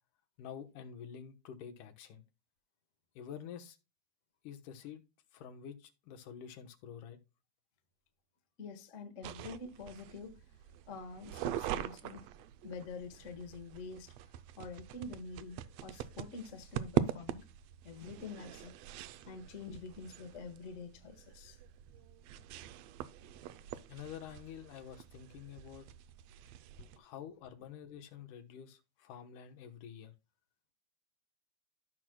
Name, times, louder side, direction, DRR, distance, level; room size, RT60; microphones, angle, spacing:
voice 1, 0.4-2.2 3.2-3.8 4.4-5.0 5.3-7.2 23.9-25.9 27.0-30.1, left 8 dB, 90° left, 2.7 m, -48 dB
voice 2, 8.6-10.4 10.9-12.3 12.6-14.1 14.6-17.4 17.8-18.7 19.2-21.6 26.8-26.9, left 4 dB, 60° left, 0.7 m, -46 dB
sound 1, 9.2-27.0, right 11 dB, 85° right, 1.5 m, -42 dB
14.0 x 6.2 x 2.2 m
omnidirectional pair, 3.5 m